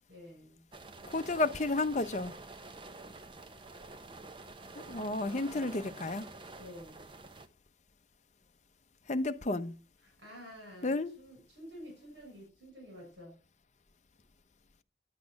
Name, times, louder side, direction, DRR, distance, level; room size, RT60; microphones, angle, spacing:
voice 1, 0.1-0.6 5.2-5.8 6.5-7.1 10.0-13.3, equal, 75° right, 6.7 m, -50 dB
sound 1, 0.7-7.5, right 3 dB, 25° right, 0.8 m, -48 dB
voice 2, 1.1-2.3 4.7-6.2 9.1-9.7 10.8-11.1, left 2 dB, 40° left, 0.8 m, -32 dB
10.5 x 8.4 x 6.3 m
head